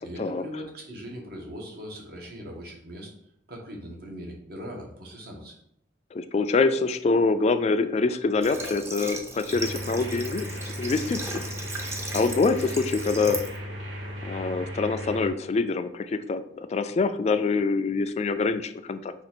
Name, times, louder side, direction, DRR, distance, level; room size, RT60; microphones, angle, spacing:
voice 1, 0.0-3.1 3.5-5.5, equal, 60° right, 0 dB, 1.2 m, -40 dB
voice 2, 6.1-10.5 10.8-11.4 12.1-13.4 14.2-19.1, left 4 dB, 35° left, 10 dB, 0.3 m, -25 dB
Water / Water tap faucet, 8.4-13.6, right 1 dB, 15° right, 0.6 m, -36 dB
sound 1, 9.5-15.3, equal, 85° right, 1.1 m, -36 dB
5.0 x 2.5 x 4.3 m, 0.70 s
head